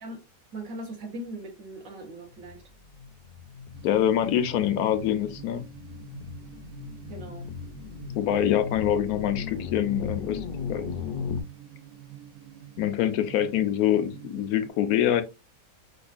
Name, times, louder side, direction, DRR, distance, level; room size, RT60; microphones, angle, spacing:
voice 1, 0.5-2.6 7.1-7.5, right 1 dB, 65° right, 1.4 m, -39 dB
sound 1, 2.3-11.4, left 6 dB, 60° left, 0.6 m, -37 dB
sound 2, 3.7-14.7, right 12 dB, 90° right, 1.1 m, -47 dB
voice 2, 3.8-5.6 8.1-10.9 12.8-15.2, left 10 dB, 85° left, 1.1 m, -25 dB
5.2 x 2.4 x 2.4 m
omnidirectional pair, 1.5 m